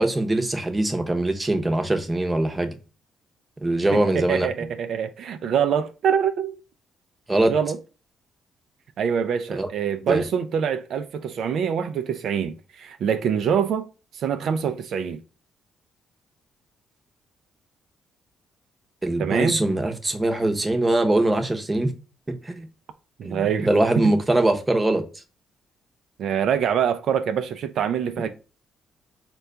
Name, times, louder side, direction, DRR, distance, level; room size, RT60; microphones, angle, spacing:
voice 1, 0.0-2.8 3.6-4.5 7.3-7.5 9.5-9.7 10.1-10.2 19.0-21.9 22.3-22.7 23.2-25.0, right 1 dB, 15° right, 0.7 m, -22 dB
voice 2, 3.9-6.6 7.5-7.8 9.0-13.9 14.1-15.2 19.2-19.6 23.2-23.7 24.0-24.1 26.2-28.3, right 8 dB, 70° right, 0.3 m, -25 dB
4.4 x 2.3 x 3.7 m
cardioid pair, 90°, 0 cm